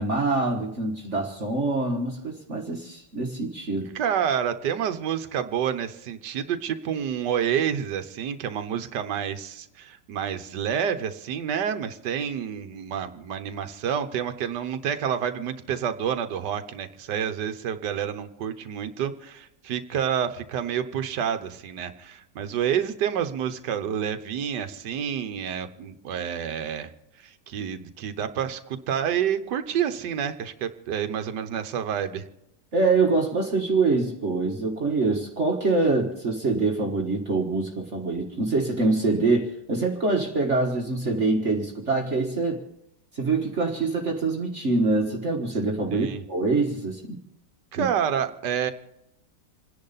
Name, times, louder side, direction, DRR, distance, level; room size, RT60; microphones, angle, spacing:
voice 1, 0.0-3.9 32.7-42.6 43.1-47.2 47.8-47.9, right 3 dB, 40° right, 0 dB, 1.6 m, -25 dB
voice 2, 3.9-26.9 27.2-32.2 45.9-46.2 47.7-48.7, right 8 dB, 70° right, 9 dB, 1.6 m, -28 dB
28.0 x 10.5 x 4.1 m, 0.82 s
omnidirectional pair, 2.0 m